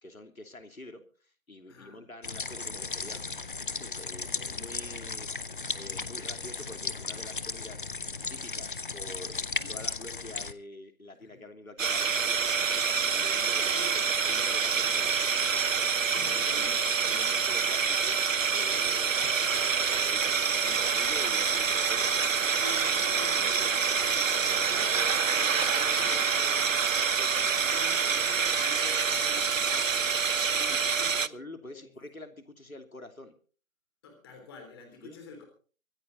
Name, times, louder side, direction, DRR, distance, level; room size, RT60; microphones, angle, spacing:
voice 1, 0.0-3.3 3.7-5.3 5.7-8.0 8.3-9.4 9.7-15.6 16.0-16.7 17.0-18.2 18.5-19.7 20.1-22.4 25.4-25.5 27.2-27.3 31.2-33.3 35.0-35.2, left 1 dB, 85° left, 6 dB, 3.1 m, -47 dB
voice 2, 1.7-2.0 4.1-4.6 9.6-9.8 11.2-11.5 13.5-14.0 15.9-17.1 18.6-18.9 20.4-21.4 22.6-26.9 27.3-30.0 30.5-31.3 31.7-31.9 34.0-35.5, left 3 dB, 20° left, 5 dB, 3.3 m, -48 dB
sound 1, 2.2-10.5, left 4 dB, 40° left, 0.9 m, -36 dB
sound 2, 11.8-31.3, right 6 dB, 70° right, 0.8 m, -26 dB
24.5 x 9.9 x 4.0 m, 0.40 s
figure-of-eight pair, 155°, 41 cm